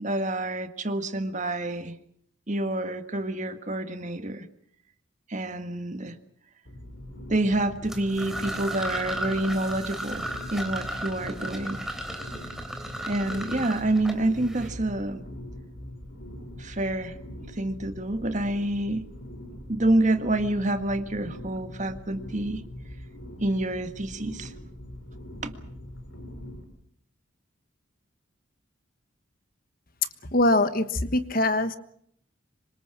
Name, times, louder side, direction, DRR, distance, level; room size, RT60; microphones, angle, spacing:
voice 1, 0.0-2.0 2.5-4.5 5.3-6.2 7.3-11.8 13.1-15.2 16.6-19.1 19.7-22.6 23.4-24.5 25.4-25.5, right 1 dB, 40° right, 8 dB, 1.8 m, -28 dB
sound 1, 6.6-26.6, left 1 dB, 85° left, 6.2 m, -42 dB
sound 2, 7.8-14.7, right 1 dB, ahead, 3.6 m, -35 dB
voice 2, 30.3-31.8, left 1 dB, 45° left, 11 dB, 1.4 m, -23 dB
26.5 x 25.0 x 6.1 m, 0.67 s
head